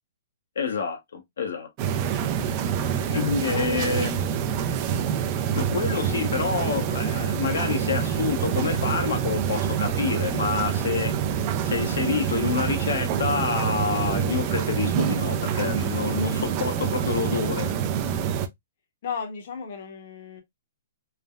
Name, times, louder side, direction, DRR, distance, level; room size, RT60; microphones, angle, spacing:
voice 1, 0.6-1.7 3.1-4.1 5.5-11.2 11.6-17.7, left 5 dB, 80° left, 0.8 m, -28 dB
sound 1, 1.8-18.5, right 8 dB, 30° right, 0.3 m, -26 dB
voice 2, 3.5-4.1 19.0-20.4, left 6 dB, 50° left, 0.8 m, -35 dB
3.2 x 2.1 x 2.2 m
hypercardioid pair, 165°, 0 cm